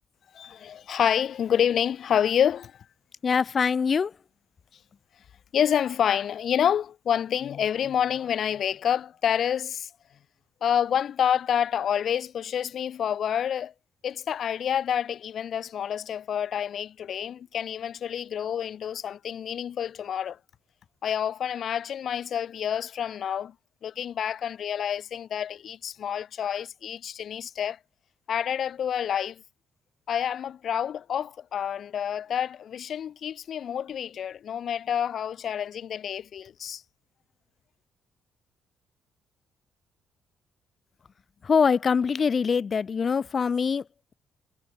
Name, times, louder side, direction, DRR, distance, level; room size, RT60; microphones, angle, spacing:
voice 1, 0.3-2.8 5.5-9.9 10.6-13.7 14.0-20.4 21.0-23.5 23.8-27.8 28.3-29.4 30.1-36.8, left 9 dB, 60° left, 3.6 m, -28 dB
voice 2, 3.2-4.1 41.4-43.9, left 6 dB, 45° left, 1.1 m, -23 dB
cardioid pair, 90°, 0 cm